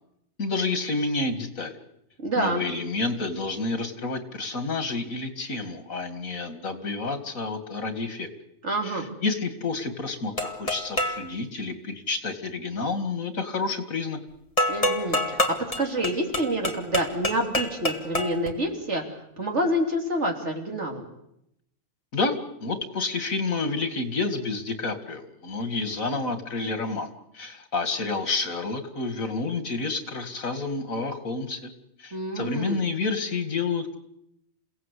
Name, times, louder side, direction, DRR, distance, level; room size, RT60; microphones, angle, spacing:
voice 1, 0.4-1.8 2.4-8.3 8.8-14.2 22.1-22.4 22.6-31.7 32.0-34.0, left 3 dB, 90° left, 9 dB, 2.5 m, -29 dB
voice 2, 2.2-2.6 8.6-9.1 14.7-15.4 15.8-21.0 32.1-32.8, right 1 dB, 60° right, 2 dB, 3.6 m, -27 dB
sound 1, 10.4-11.3 14.6-18.5, left 1 dB, 25° left, 2.2 m, -27 dB
28.5 x 17.0 x 8.4 m, 0.80 s
omnidirectional pair, 1.4 m